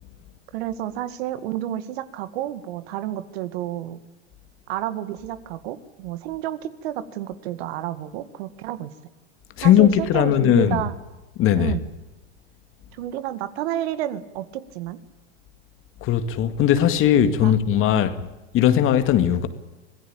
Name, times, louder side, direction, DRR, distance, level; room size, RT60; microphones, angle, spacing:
voice 1, 0.5-4.0 4.7-8.9 9.6-10.9 11.5-11.8 12.9-15.0 17.4-17.5 17.9-18.1, right 12 dB, 65° right, 2.2 m, -30 dB
voice 2, 9.6-10.8 11.4-11.7 16.0-18.1 18.5-19.5, left 10 dB, 40° left, 2.1 m, -18 dB
25.5 x 17.0 x 8.9 m
supercardioid pair, 125°, 33 cm